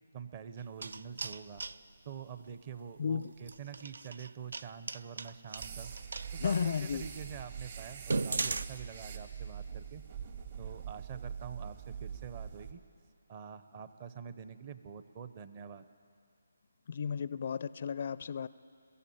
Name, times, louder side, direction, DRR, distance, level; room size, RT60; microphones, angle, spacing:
voice 1, 0.1-1.6 2.0-5.9 6.3-10.0 10.6-12.8 13.3-15.9, right 7 dB, 30° right, 12 dB, 0.8 m, -46 dB
sound 1, 0.6-1.8 3.4-6.3 6.9-7.0 7.4-7.5 8.0-8.7, right 3 dB, 70° right, 0.6 m, -37 dB
voice 2, 3.0-3.3 6.4-7.0 16.9-18.5, left 6 dB, 50° left, 17 dB, 0.4 m, -33 dB
sound 2, 5.6-12.7, right 7 dB, 50° right, 1.7 m, -43 dB
22.0 x 15.0 x 8.7 m, 2.4 s
figure-of-eight pair, 160°, 0 cm